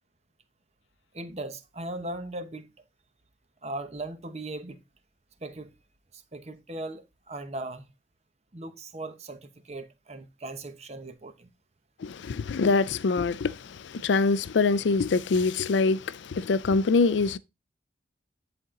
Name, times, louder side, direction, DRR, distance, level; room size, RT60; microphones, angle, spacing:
voice 1, 1.1-2.7 3.6-4.8 5.4-5.7 6.1-7.9 8.5-11.5, right 2 dB, 35° right, 1.0 m, -38 dB
voice 2, 12.0-17.4, left 4 dB, 80° left, 0.4 m, -24 dB
10.0 x 4.3 x 3.7 m
head